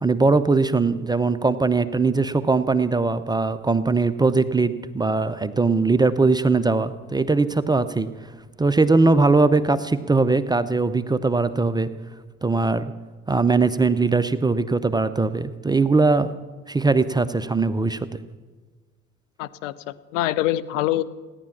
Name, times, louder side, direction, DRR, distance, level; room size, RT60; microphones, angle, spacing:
voice 1, 0.0-8.3 8.6-11.9 12.4-12.9 13.3-16.3 16.7-18.1, right 3 dB, 10° right, 13 dB, 0.5 m, -20 dB
voice 2, 19.4-21.0, left 14 dB, 60° left, 14 dB, 0.8 m, -25 dB
17.0 x 10.5 x 7.2 m, 1.3 s
figure-of-eight pair, 65°, 42 cm